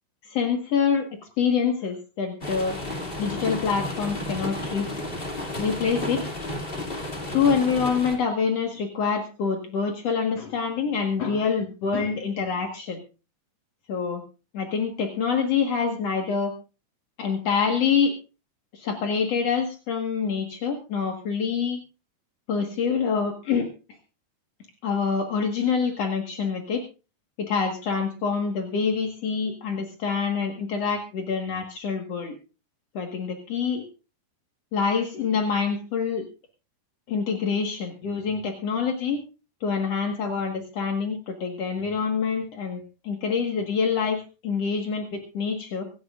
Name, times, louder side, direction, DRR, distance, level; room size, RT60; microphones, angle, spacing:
voice 1, 0.2-1.1 1.4-2.8 3.2-4.9 5.6-6.2 7.3-13.0 13.9-14.2 14.5-16.5 17.2-18.1 18.7-21.8 22.5-23.7 24.8-26.8 27.4-32.3 32.9-33.8 34.7-36.3 37.1-39.2 39.6-45.8, left 6 dB, 70° left, 3 dB, 1.5 m, -26 dB
sound 1, 2.4-8.2, left 1 dB, 35° left, 0.9 m, -32 dB
25.0 x 12.5 x 2.5 m, 0.32 s
omnidirectional pair, 5.5 m